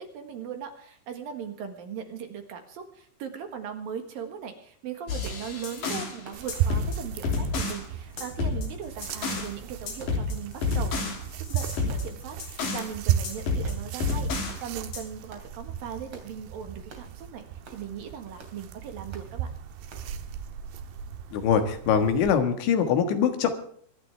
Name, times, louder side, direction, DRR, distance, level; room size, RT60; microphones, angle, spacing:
voice 1, 0.0-11.2 11.5-19.5, right 7 dB, 60° right, 6 dB, 2.9 m, -39 dB
sound 1, 5.1-6.2 6.5-7.8 8.2-9.5 9.9-12.9 13.2-14.6 14.9-15.0, left 3 dB, 50° left, 4.4 m, -30 dB
sound 2, 5.2-5.4 6.2-6.5 7.2-7.4 8.2-8.3 9.1-9.3 10.0-10.3 11.0-11.1 11.9-12.1 12.8-13.0 13.6-13.8 14.5-14.7 15.3-15.5 16.1-16.3 16.9-17.1 17.6-17.8 18.4-18.6 19.1-19.3 19.9-20.1, right 3 dB, 35° right, 3.1 m, -48 dB
sound 3, 6.3-22.3, right 10 dB, 90° right, 3.5 m, -35 dB
voice 2, 21.3-23.5, left 7 dB, 80° left, 7 dB, 4.0 m, -23 dB
24.5 x 11.5 x 3.5 m, 0.62 s
omnidirectional pair, 5.2 m